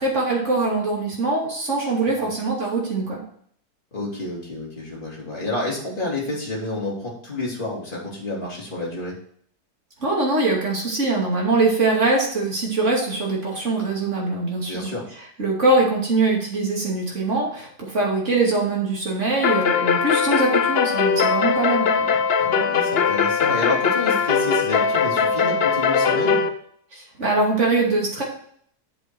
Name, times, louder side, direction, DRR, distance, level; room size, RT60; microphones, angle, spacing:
voice 1, 0.0-3.2 10.0-14.9 15.4-21.9 26.9-28.2, right 3 dB, 50° right, -2 dB, 2.9 m, -22 dB
voice 2, 3.9-9.1 14.7-15.0 21.6-26.4, left 2 dB, 30° left, -5 dB, 3.3 m, -30 dB
sound 1, 19.4-26.5, left 6 dB, 55° left, 0.7 m, -20 dB
7.9 x 7.1 x 4.5 m, 0.62 s
omnidirectional pair, 1.7 m